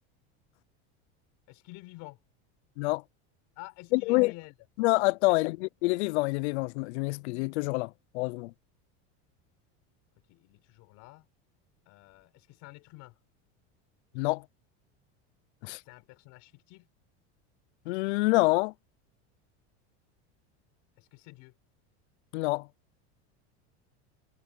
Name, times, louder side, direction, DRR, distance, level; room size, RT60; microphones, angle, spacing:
voice 1, 1.5-2.2 3.6-4.5 5.3-5.4 10.2-11.3 11.9-13.2 15.8-16.9 21.0-21.5, left 24 dB, 60° left, 5.7 m, -49 dB
voice 2, 3.9-4.3 4.8-8.5 14.1-14.4 15.6-15.8 17.9-18.7 22.3-22.7, left 24 dB, 80° left, 0.5 m, -27 dB
supercardioid pair, 140°, 33 cm